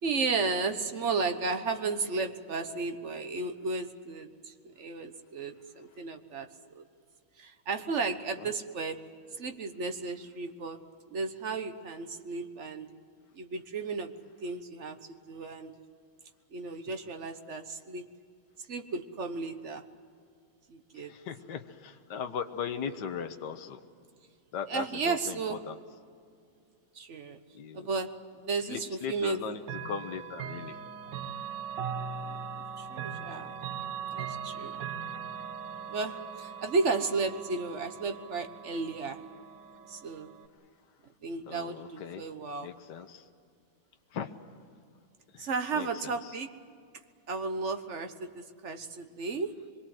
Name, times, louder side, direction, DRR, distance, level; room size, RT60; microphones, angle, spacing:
voice 1, 0.0-6.5 6.7-6.8 7.4-9.0 9.3-10.8 11.1-12.9 13.3-14.1 14.4-15.7 16.5-18.0 18.7-19.9 20.7-21.1 22.9-23.0 24.7-25.6 26.9-27.4 27.7-28.1 28.4-29.4 32.2-32.4 32.8-33.5 34.1-34.8 35.9-39.2 39.9-40.3 41.2-42.7 45.4-46.5 47.3-49.6, right 4 dB, 40° right, 7 dB, 1.3 m, -34 dB
voice 2, 21.0-23.8 24.5-25.7 27.5-27.9 28.7-29.6 29.8-30.8 41.5-42.2 42.6-43.2 44.1-44.3 45.3-45.5 45.8-45.9, left 7 dB, 60° left, 6 dB, 1.7 m, -38 dB
Chime / Clock, 29.6-40.5, right 7 dB, 65° right, 1.8 m, -40 dB
24.5 x 23.0 x 7.8 m, 2.3 s
omnidirectional pair, 2.2 m